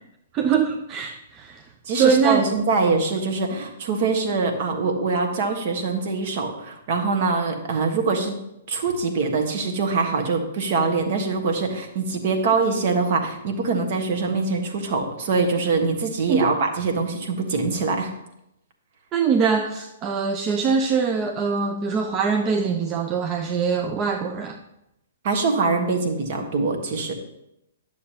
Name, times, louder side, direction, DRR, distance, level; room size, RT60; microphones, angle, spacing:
voice 1, 0.3-1.6 1.9-2.4 16.3-16.5 19.1-24.6, right 6 dB, 25° right, 5 dB, 0.5 m, -23 dB
voice 2, 1.9-8.3 8.7-18.1 25.2-27.1, right 4 dB, 45° right, 3 dB, 1.3 m, -23 dB
11.0 x 6.8 x 2.9 m, 0.86 s
figure-of-eight pair, 115°, 0 cm